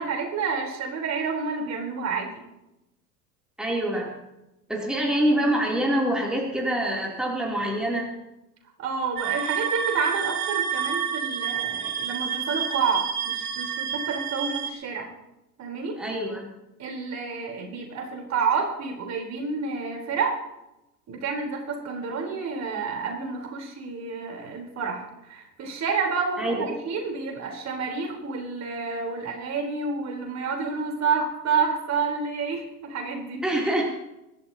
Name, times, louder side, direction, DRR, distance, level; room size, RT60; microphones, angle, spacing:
voice 1, 0.0-2.3 4.9-5.1 8.8-15.1 15.6-16.0 16.8-20.3 21.1-33.4, right 5 dB, 35° right, 1 dB, 4.0 m, -29 dB
voice 2, 3.6-4.2 4.7-8.1 16.0-16.5 26.4-26.5 33.4-33.9, right 1 dB, ahead, -3 dB, 3.1 m, -25 dB
sound 1, 9.2-14.7, right 8 dB, 65° right, 1.8 m, -29 dB
25.5 x 12.5 x 2.9 m, 0.92 s
figure-of-eight pair, 85°, 48 cm